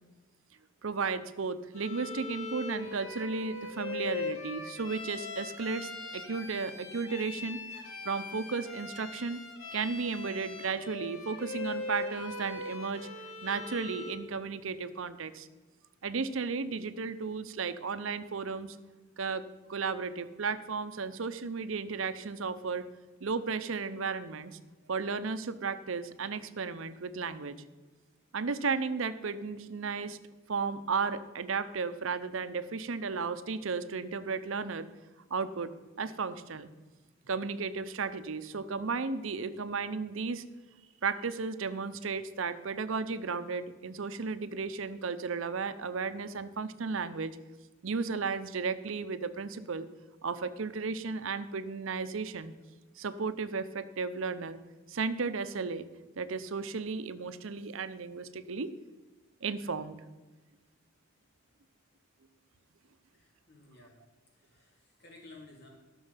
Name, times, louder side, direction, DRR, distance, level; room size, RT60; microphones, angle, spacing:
voice 1, 0.8-9.4 9.7-13.1 13.4-15.5 16.0-18.8 19.2-19.4 19.7-22.8 23.2-24.6 24.9-27.6 28.3-30.2 30.5-34.9 35.3-35.7 36.0-36.7 37.3-40.4 41.0-47.4 47.8-49.9 50.2-52.5 53.0-54.6 54.9-55.9 56.2-58.7 59.4-60.0, right 4 dB, 75° right, 12 dB, 0.6 m, -34 dB
Bowed string instrument, 1.7-14.3, left 3 dB, 80° left, 1.6 m, -40 dB
voice 2, 63.1-64.0 64.3-65.7, left 2 dB, 50° left, -2 dB, 3.0 m, -55 dB
13.0 x 6.4 x 5.7 m, 1.2 s
head